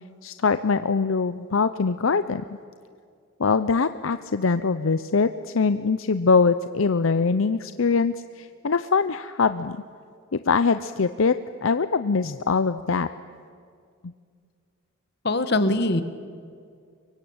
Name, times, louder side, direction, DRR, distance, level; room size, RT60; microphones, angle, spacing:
voice 1, 0.2-2.6 3.4-9.8 10.3-13.1 14.0-14.1, left 4 dB, 75° left, 12 dB, 0.6 m, -23 dB
voice 2, 15.2-16.0, left 2 dB, 50° left, 10 dB, 1.6 m, -22 dB
24.5 x 23.5 x 8.8 m, 2.2 s
head